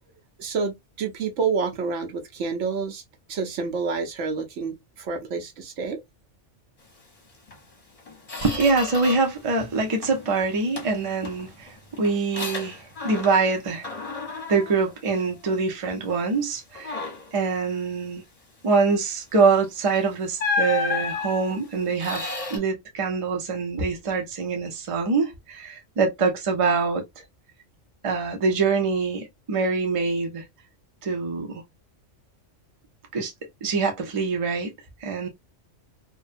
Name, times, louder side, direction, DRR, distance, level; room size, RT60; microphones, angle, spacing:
voice 1, 0.4-3.0 3.3-6.0, right 5 dB, 75° right, 1.0 m, -28 dB
Squeak, 7.5-7.6 8.0-9.4 9.7-10.3 10.8-13.6 13.8-15.7 16.1-16.3 16.7-17.4 19.5-19.7 20.4-22.6, left 4 dB, 35° left, 0.8 m, -32 dB
voice 2, 8.4-13.9 14.5-17.0 17.3-18.2 18.6-27.2 28.0-30.4 31.0-31.6 33.1-33.3 33.6-34.7 35.0-35.3, right 4 dB, 35° right, 0.6 m, -24 dB
2.6 x 2.2 x 2.4 m
omnidirectional pair, 1.3 m